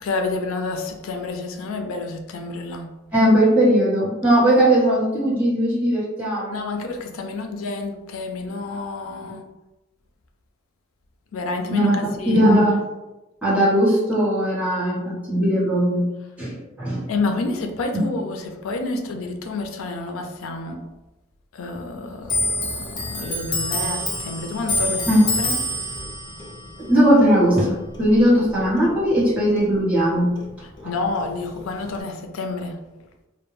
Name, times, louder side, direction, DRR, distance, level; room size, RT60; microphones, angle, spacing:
voice 1, 0.0-2.9 6.5-9.4 11.3-12.6 17.1-20.8 21.5-25.1 25.3-25.5 30.8-32.8, left 3 dB, 85° left, 5 dB, 0.4 m, -29 dB
voice 2, 3.1-6.6 11.7-12.0 12.3-12.8 13.4-16.1 16.4-17.1 25.1-25.2 26.8-30.4, equal, 5° right, -9 dB, 1.0 m, -18 dB
Clock, 22.2-29.3 29.6-30.9 31.2-32.0, left 1 dB, 20° left, 0.4 m, -28 dB
2.2 x 2.1 x 3.0 m, 1.0 s
head